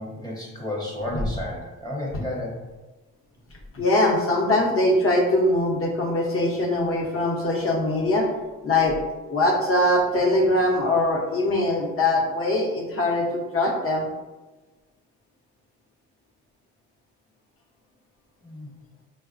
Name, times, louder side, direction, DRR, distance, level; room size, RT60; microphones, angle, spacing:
voice 1, 0.0-2.6 18.4-18.7, left 1 dB, 10° left, -3 dB, 0.7 m, -32 dB
voice 2, 3.7-8.3 8.6-9.0 9.3-14.1, left 1 dB, 45° left, 0 dB, 0.8 m, -22 dB
4.0 x 2.1 x 2.5 m, 1.2 s
cardioid pair, 90°, 30 cm